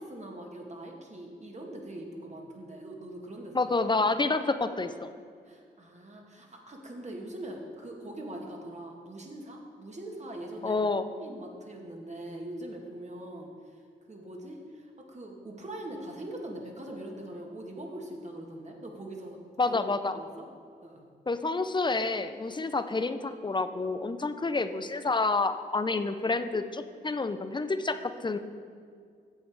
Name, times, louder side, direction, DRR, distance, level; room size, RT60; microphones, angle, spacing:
voice 1, 0.0-3.8 5.5-10.8 11.1-13.8 14.1-19.4 19.7-20.5 20.8-21.1, right 1 dB, 35° right, 0 dB, 2.0 m, -42 dB
voice 2, 3.5-5.1 10.6-11.0 19.6-20.2 21.3-28.4, left 3 dB, 25° left, 10 dB, 0.7 m, -29 dB
9.0 x 7.3 x 4.9 m, 2.1 s
hypercardioid pair, 45°, 20 cm